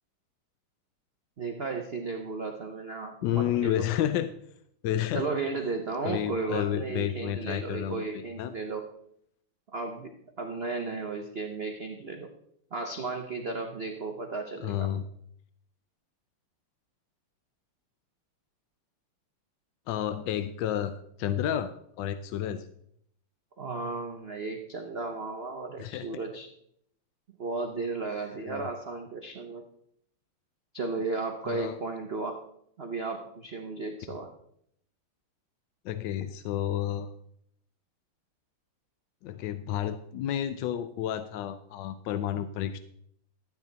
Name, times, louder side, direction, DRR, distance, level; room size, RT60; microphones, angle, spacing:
voice 1, 1.4-3.8 5.1-8.8 9.7-12.3 12.7-14.9 23.6-26.5 27.4-29.6 30.7-32.4 32.8-34.3, right 3 dB, 70° right, 4 dB, 0.5 m, -34 dB
voice 2, 3.2-4.3 4.8-5.3 6.0-8.5 14.6-15.1 19.9-21.7 22.0-22.7 25.8-26.1 28.5-28.6 31.5-31.8 35.8-37.1 39.2-42.8, left 11 dB, 75° left, 10 dB, 1.1 m, -31 dB
13.0 x 8.4 x 4.0 m, 0.72 s
omnidirectional pair, 2.4 m